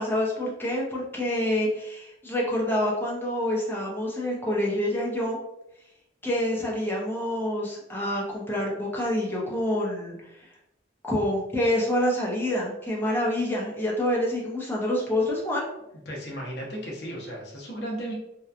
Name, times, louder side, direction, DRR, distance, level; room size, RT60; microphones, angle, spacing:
voice 1, 0.0-5.4 6.2-10.5 11.0-15.7, left 1 dB, 10° left, -4 dB, 0.6 m, -27 dB
voice 2, 16.1-18.1, right 1 dB, 65° left, -2 dB, 0.8 m, -35 dB
2.8 x 2.2 x 2.4 m, 0.85 s
head